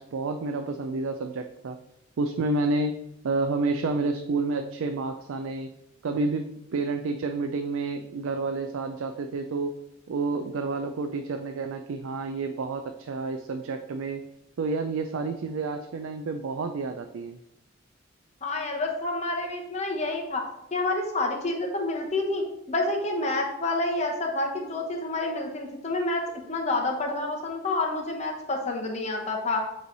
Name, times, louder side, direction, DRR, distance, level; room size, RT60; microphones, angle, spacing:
voice 1, 0.0-1.8 2.2-5.7 6.0-9.8 10.1-14.2 14.6-17.4, right 3 dB, 90° right, 6 dB, 0.4 m, -29 dB
voice 2, 18.4-20.4 20.7-26.2 26.5-29.6, left 2 dB, 35° left, 1 dB, 1.0 m, -28 dB
7.9 x 3.2 x 3.9 m, 0.86 s
head